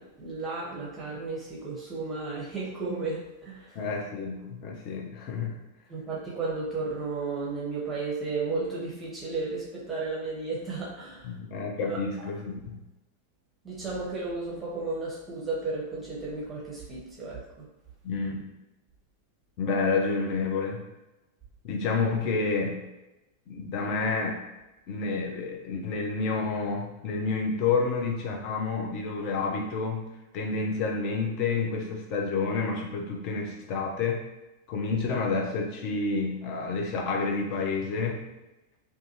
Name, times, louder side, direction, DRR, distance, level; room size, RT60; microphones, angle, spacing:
voice 1, 0.0-3.7 5.9-11.3 11.9-12.3 13.6-17.7, right 3 dB, 15° right, -6 dB, 0.7 m, -34 dB
voice 2, 3.7-5.6 11.2-12.8 18.0-18.5 19.6-20.8 21.6-22.8 23.5-24.4 24.9-34.2 34.7-38.2, left 4 dB, 40° left, 1 dB, 0.5 m, -29 dB
2.5 x 2.4 x 2.7 m, 0.98 s
figure-of-eight pair, 90°, 0 cm